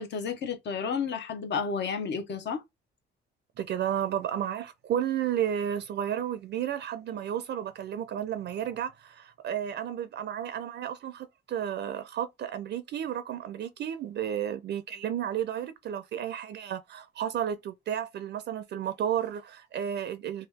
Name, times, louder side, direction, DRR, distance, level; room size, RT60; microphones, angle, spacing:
voice 1, 0.0-2.6, left 6 dB, 65° left, 0.8 m, -31 dB
voice 2, 3.6-20.5, right 10 dB, 60° right, 0.4 m, -32 dB
2.8 x 2.3 x 3.4 m
cardioid pair, 90°, 20 cm